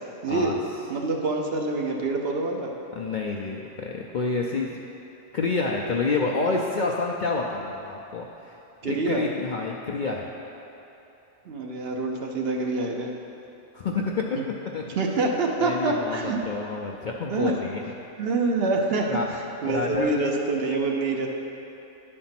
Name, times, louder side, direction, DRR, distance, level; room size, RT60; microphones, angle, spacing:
voice 1, 0.2-0.6 0.9-2.7 8.8-9.2 11.4-13.1 14.4-14.5 15.0-16.4 17.3-17.5 18.2-19.1 19.6-21.3, right 3 dB, 55° right, 1 dB, 0.9 m, -26 dB
voice 2, 3.0-4.8 5.3-8.6 8.8-10.3 13.7-15.0 15.6-17.8 19.1-19.3 19.6-20.1, left 3 dB, 55° left, -1 dB, 0.5 m, -28 dB
10.5 x 4.4 x 5.8 m, 2.9 s
omnidirectional pair, 1.3 m